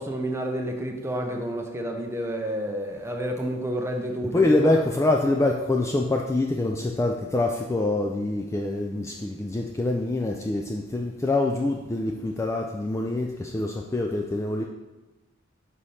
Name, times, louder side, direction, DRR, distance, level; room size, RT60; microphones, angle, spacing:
voice 1, 0.0-4.8, right 1 dB, 15° right, 2 dB, 0.7 m, -30 dB
voice 2, 4.3-13.3 13.5-14.6, left 2 dB, 15° left, 1 dB, 0.3 m, -25 dB
5.0 x 4.2 x 5.5 m, 1.1 s
head